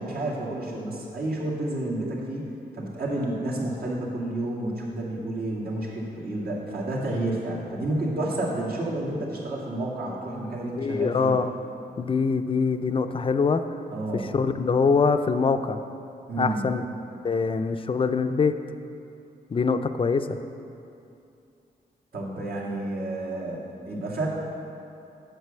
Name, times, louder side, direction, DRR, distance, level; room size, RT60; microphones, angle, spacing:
voice 1, 0.0-2.5 2.7-11.3 13.9-14.3 16.3-16.6 22.1-24.3, right 1 dB, 70° right, -5 dB, 2.2 m, -30 dB
voice 2, 10.8-11.5 12.0-13.6 14.1-15.8 16.4-16.8 17.2-18.6 19.5-20.4, left 5 dB, 30° left, 9 dB, 0.5 m, -24 dB
8.0 x 6.7 x 6.7 m, 2.6 s
wide cardioid pair, 100°, 17 cm